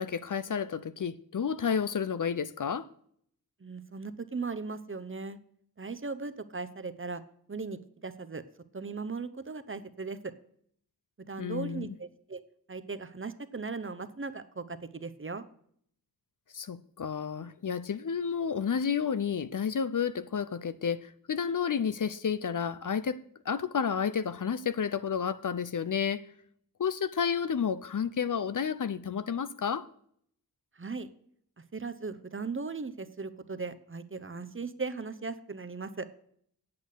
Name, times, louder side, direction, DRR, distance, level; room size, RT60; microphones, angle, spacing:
voice 1, 0.0-2.9 11.4-11.9 16.5-23.2 23.4-26.2 26.8-29.9, left 7 dB, 55° left, 0.6 m, -31 dB
voice 2, 3.6-5.4 5.8-7.2 7.5-8.4 8.7-10.3 11.3-12.4 12.7-15.4 30.8-31.1 31.7-36.1, right 4 dB, 35° right, 0.8 m, -38 dB
8.6 x 8.2 x 6.6 m
wide cardioid pair, 90°, 37 cm